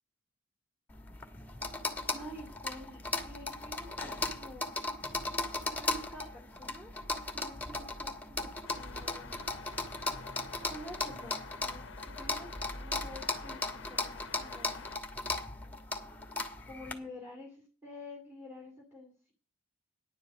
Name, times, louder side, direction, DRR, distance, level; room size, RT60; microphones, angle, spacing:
sound 1, 0.9-16.9, left 3 dB, 10° left, 1.3 m, -37 dB
voice 1, 2.1-4.7 5.7-6.9 7.3-9.4 10.6-14.9 16.6-19.3, left 1 dB, 15° right, -3 dB, 2.4 m, -49 dB
sound 2, 8.6-15.0, left 5 dB, 60° left, 0.7 m, -49 dB
10.5 x 5.6 x 7.9 m, 0.41 s
head